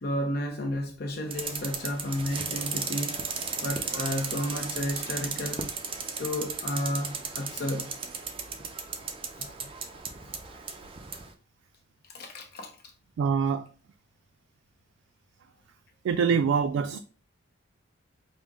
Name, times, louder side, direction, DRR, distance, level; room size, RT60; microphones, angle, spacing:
voice 1, 0.0-3.2 3.6-5.7 6.2-7.9 9.4-9.7 12.1-12.7, left 1 dB, 50° left, 0.6 m, -32 dB
sound 1, 1.3-11.3, right 5 dB, 25° right, 0.4 m, -35 dB
voice 2, 13.2-13.7 16.0-17.0, right 6 dB, 90° right, 0.3 m, -24 dB
5.3 x 2.1 x 3.5 m
head